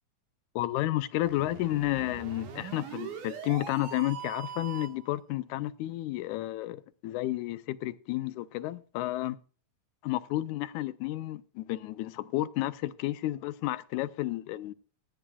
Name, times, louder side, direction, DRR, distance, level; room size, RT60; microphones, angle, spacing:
voice 1, 0.6-9.4 10.0-14.7, left 16 dB, 85° left, 2.0 m, -31 dB
sound 1, 1.2-5.1, right 7 dB, 85° right, 2.9 m, -41 dB
17.5 x 10.0 x 2.3 m
omnidirectional pair, 3.4 m